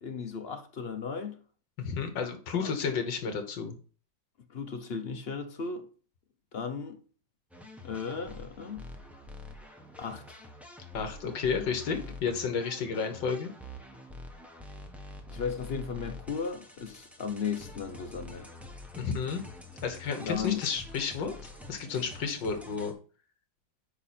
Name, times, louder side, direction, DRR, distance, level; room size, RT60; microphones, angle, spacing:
voice 1, 0.0-1.4 2.6-2.7 4.5-5.9 6.5-7.0 7.8-8.8 10.0-10.4 15.3-18.5 20.2-20.6, left 6 dB, 50° left, 0.7 m, -35 dB
voice 2, 1.8-3.8 10.9-13.5 19.0-19.4 19.8-21.3 21.7-22.9, left 6 dB, 75° left, 1.9 m, -31 dB
sound 1, 7.5-22.9, left 2 dB, ahead, 1.0 m, -46 dB
8.0 x 5.2 x 4.3 m
omnidirectional pair, 2.1 m